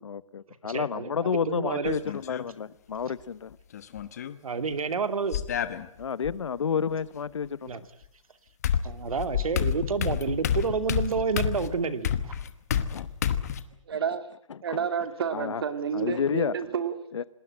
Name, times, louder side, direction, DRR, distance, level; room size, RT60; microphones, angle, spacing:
voice 1, 0.0-3.6 6.0-7.8 12.9-13.1 14.7-14.8 15.3-15.6 15.9-16.5 17.1-17.2, left 6 dB, 60° left, 18 dB, 1.1 m, -30 dB
voice 2, 0.6-2.0 4.4-5.4 7.7-7.8 8.8-12.4, right 5 dB, 85° right, 10 dB, 2.6 m, -29 dB
sound 1, 1.9-2.5 3.7-4.4 5.3-6.3 8.0-8.1 8.6-13.6, left 9 dB, 30° left, 1.2 m, -29 dB
voice 3, 13.9-14.2 14.6-17.0, right 7 dB, 45° right, 10 dB, 2.5 m, -29 dB
27.0 x 19.5 x 9.0 m, 0.68 s
hypercardioid pair, 180°, 17 cm